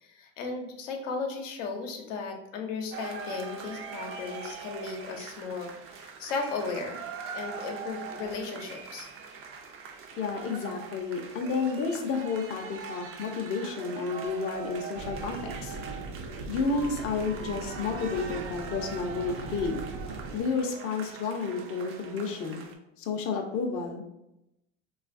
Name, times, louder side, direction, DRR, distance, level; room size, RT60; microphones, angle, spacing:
voice 1, 0.0-5.7 6.0-7.1 7.3-9.1, left 4 dB, 80° left, 3 dB, 0.8 m, -35 dB
sound 1, 2.9-22.7, right 6 dB, 35° right, 0.5 m, -42 dB
voice 2, 10.2-15.8 16.5-19.8 20.3-22.6 23.0-24.0, left 4 dB, 35° left, 3 dB, 0.6 m, -31 dB
sound 2, 14.9-20.4, right 3 dB, 80° right, 0.7 m, -39 dB
3.2 x 2.4 x 2.5 m, 0.86 s
supercardioid pair, 95°, 37 cm